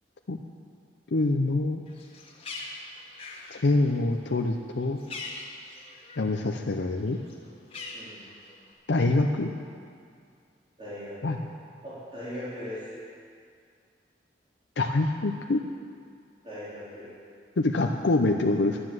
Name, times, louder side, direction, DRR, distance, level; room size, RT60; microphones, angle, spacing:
voice 1, 1.1-1.8 3.5-5.0 6.2-7.2 8.9-9.5 11.2-11.4 14.8-15.6 17.6-18.8, left 2 dB, 90° left, 3 dB, 0.6 m, -25 dB
Bird, 1.9-6.5 6.8-8.7, left 3 dB, 35° left, 1.7 m, -42 dB
voice 2, 7.9-8.2 10.8-11.1 11.8-12.8 16.4-17.1, left 1 dB, 30° right, -11 dB, 3.6 m, -39 dB
11.5 x 9.6 x 7.6 m, 2.2 s
head